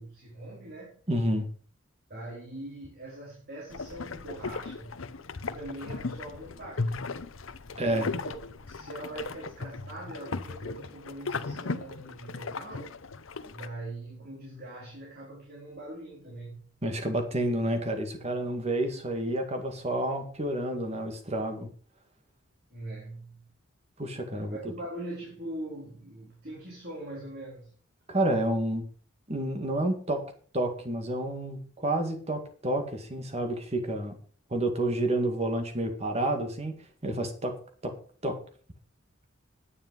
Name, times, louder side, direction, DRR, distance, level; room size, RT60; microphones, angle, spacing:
voice 1, 0.0-1.0 2.1-5.0 5.4-7.0 7.7-8.4 8.7-12.9 13.5-16.7 22.7-23.5 24.3-27.7, right 1 dB, 50° right, 4.1 m, -42 dB
voice 2, 1.1-1.5 7.8-8.1 16.8-21.7 24.0-24.6 28.1-28.8 29.3-30.2 30.5-34.2 34.5-37.6 37.8-37.9 38.2-38.4, right 1 dB, 30° right, 2.1 m, -29 dB
sound 1, 3.7-13.7, left 3 dB, 75° left, 0.8 m, -37 dB
10.0 x 9.1 x 5.4 m
head